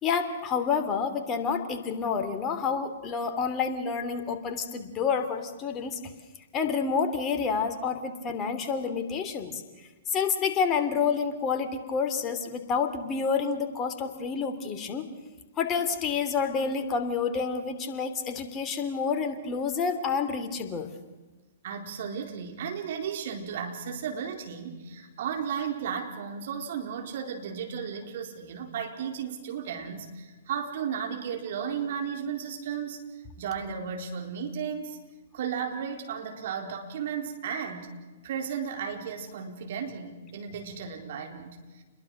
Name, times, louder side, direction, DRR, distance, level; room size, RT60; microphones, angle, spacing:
voice 1, 0.0-6.0 6.5-9.6 10.1-15.1 15.6-20.9, left 5 dB, 25° left, 7 dB, 2.9 m, -29 dB
voice 2, 21.6-33.0 33.4-35.0 35.3-37.9 38.2-41.8, right 7 dB, 55° right, 3 dB, 4.4 m, -34 dB
29.5 x 22.0 x 6.6 m, 1.2 s
figure-of-eight pair, 115°, 0 cm